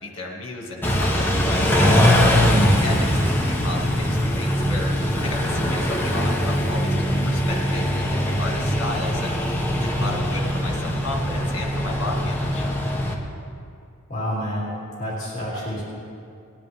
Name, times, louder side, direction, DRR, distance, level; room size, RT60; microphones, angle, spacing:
voice 1, 0.0-2.2 2.6-4.9 5.2-7.0 7.2-9.4 9.8-12.7, left 2 dB, 60° left, -1 dB, 2.0 m, -33 dB
Car / Idling / Accelerating revving vroom, 0.8-13.1, equal, 10° left, 1.0 m, -21 dB
voice 2, 14.1-14.7 15.0-15.8, equal, 35° left, -6 dB, 2.8 m, -28 dB
19.0 x 10.5 x 3.6 m, 2.4 s
head